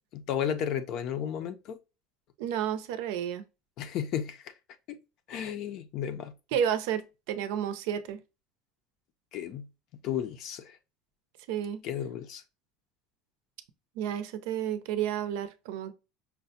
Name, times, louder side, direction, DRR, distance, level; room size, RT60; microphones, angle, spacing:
voice 1, 0.1-1.8 3.8-4.5 4.9-5.0 5.3-6.3 9.3-9.7 10.0-10.8 11.8-12.4, left 9 dB, 45° left, 0.5 m, -33 dB
voice 2, 2.4-3.4 6.5-8.2 11.5-11.8 14.0-15.9, right 9 dB, 75° right, 0.5 m, -31 dB
5.6 x 2.1 x 2.7 m
cardioid pair, 160°, 0 cm